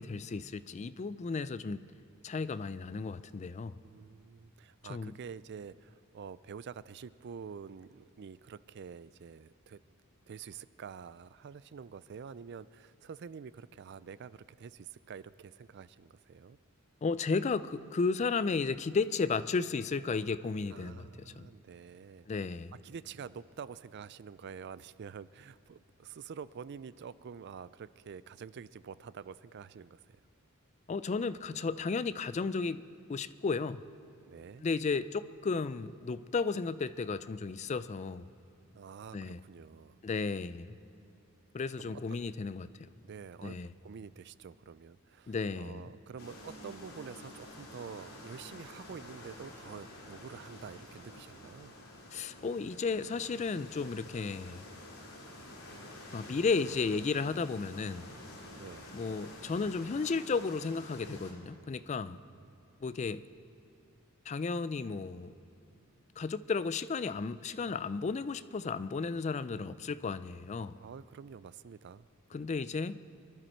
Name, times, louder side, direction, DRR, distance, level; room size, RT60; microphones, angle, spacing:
voice 1, 0.0-1.8 2.2-3.7 4.9-5.1 17.0-21.5 22.3-22.7 30.9-32.8 33.1-33.8 34.6-38.3 39.1-39.4 40.0-40.7 41.5-42.7 43.4-43.7 45.3-45.9 52.1-54.6 56.1-58.1 58.9-62.2 62.8-63.2 64.3-65.4 66.2-70.7 72.3-73.0, left 4 dB, 30° left, 14 dB, 0.3 m, -34 dB
voice 2, 3.8-9.8 10.3-16.6 20.7-22.3 22.8-30.0 34.3-34.6 38.7-40.0 41.8-42.2 43.0-51.8 58.5-58.9 62.1-62.4 70.7-72.1 72.3-72.5, right 6 dB, 50° right, 17 dB, 0.4 m, -47 dB
sound 1, 46.2-61.3, left 1 dB, 75° left, 2.5 m, -49 dB
24.0 x 12.0 x 4.5 m, 2.7 s
head